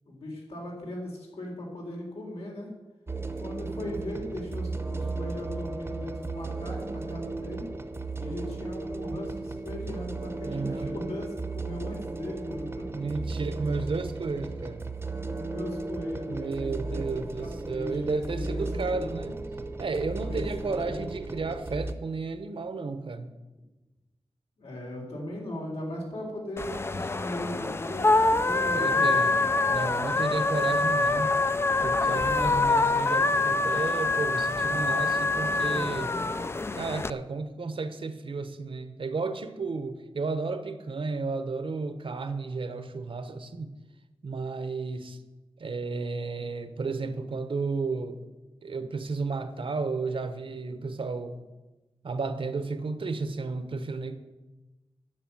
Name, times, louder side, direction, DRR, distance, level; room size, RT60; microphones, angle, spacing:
voice 1, 0.1-2.7 3.4-7.7 8.2-12.9 15.2-19.2 20.2-21.0 24.6-29.4, left 1 dB, 90° left, -2 dB, 3.9 m, -38 dB
sound 1, 3.1-21.9, right 3 dB, 25° right, 0.8 m, -35 dB
voice 2, 10.4-11.0 12.9-14.9 16.3-19.4 19.8-23.3 28.7-29.3 29.7-31.4 31.8-36.2 36.7-43.8 44.2-45.2 45.6-48.2 48.6-51.4 52.0-54.2, right 4 dB, 60° right, 10 dB, 1.0 m, -32 dB
sound 2, 26.6-37.1, left 3 dB, 25° left, 0.4 m, -25 dB
9.9 x 7.2 x 8.9 m, 1.1 s
wide cardioid pair, 125°, 10 cm